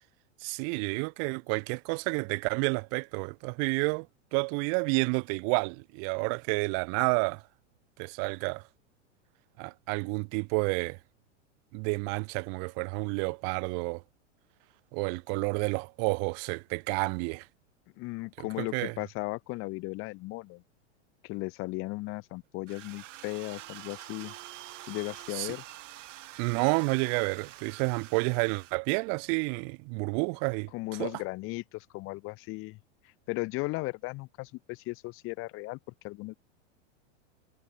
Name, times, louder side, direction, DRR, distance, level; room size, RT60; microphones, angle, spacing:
voice 1, 0.4-4.1 4.3-7.4 8.0-8.6 9.6-11.0 11.7-14.0 14.9-17.5 18.6-18.9 25.3-25.5 26.4-30.7 31.0-31.1, right 40 dB or more, 40° right, 1.0 m, -30 dB
voice 2, 18.0-20.6 21.2-24.3 24.9-25.6 30.7-32.8 33.3-35.8 36.0-36.3, left 23 dB, 35° left, 1.1 m, -36 dB
sound 1, 22.7-28.7, right 14 dB, 75° right, 3.1 m, -46 dB
supercardioid pair, 140°, 37 cm